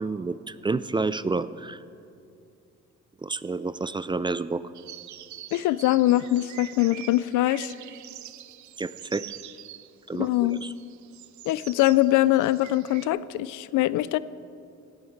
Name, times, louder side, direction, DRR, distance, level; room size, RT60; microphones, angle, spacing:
voice 1, 0.0-1.8 3.2-4.6 8.8-9.2 10.1-10.7, right 3 dB, 15° right, 16 dB, 0.3 m, -29 dB
sound 1, 4.7-13.1, right 12 dB, 70° right, 0.7 m, -45 dB
voice 2, 5.5-7.7 10.1-10.6 11.5-14.2, left 16 dB, 85° left, 18 dB, 0.5 m, -23 dB
17.0 x 12.0 x 4.6 m, 2.6 s
cardioid pair, 90°, 30 cm